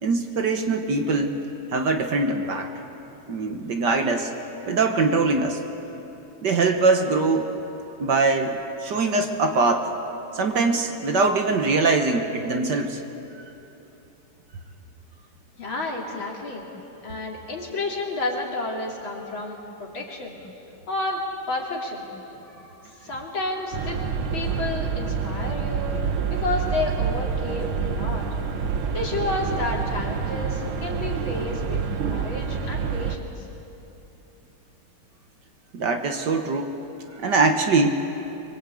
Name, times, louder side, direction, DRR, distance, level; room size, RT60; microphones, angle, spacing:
voice 1, 0.0-1.4 1.7-2.7 3.3-4.3 4.7-5.6 6.4-7.5 8.0-9.9 10.3-13.0 35.7-36.7 37.2-38.0, right 3 dB, 55° right, 5 dB, 1.8 m, -22 dB
voice 2, 15.6-16.7 17.0-20.4 20.9-22.1 23.0-24.0 24.3-26.0 26.3-28.2 28.9-31.8 32.1-33.5, left 2 dB, 65° left, -1 dB, 3.8 m, -30 dB
sound 1, 23.7-33.2, right 6 dB, 75° right, 2.0 m, -27 dB
24.0 x 22.0 x 8.4 m, 2.9 s
omnidirectional pair, 2.3 m